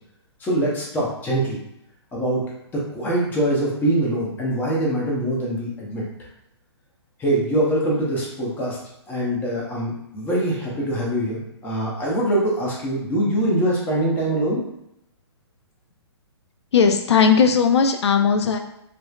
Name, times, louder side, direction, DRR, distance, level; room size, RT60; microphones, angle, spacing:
voice 1, 0.4-1.6 2.1-2.4 2.7-6.0 7.2-8.8 9.1-14.6, right 1 dB, 10° left, -4 dB, 0.7 m, -23 dB
voice 2, 16.7-18.6, left 6 dB, 75° left, 6 dB, 0.4 m, -17 dB
3.0 x 2.0 x 2.4 m, 0.80 s
hypercardioid pair, 130°, 14 cm